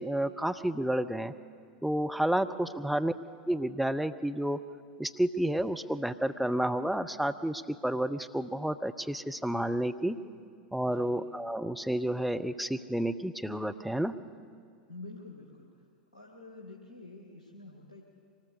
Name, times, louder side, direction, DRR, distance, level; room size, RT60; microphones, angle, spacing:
voice 1, 0.0-1.3 1.8-3.1 3.5-4.6 5.0-10.2 10.7-14.1, right 1 dB, ahead, 8 dB, 0.8 m, -30 dB
voice 2, 2.6-3.0 10.8-11.2 14.9-15.7 16.1-18.0, left 2 dB, 75° left, -2 dB, 2.4 m, -48 dB
24.0 x 19.0 x 6.6 m, 2.2 s
figure-of-eight pair, 85°, 4 cm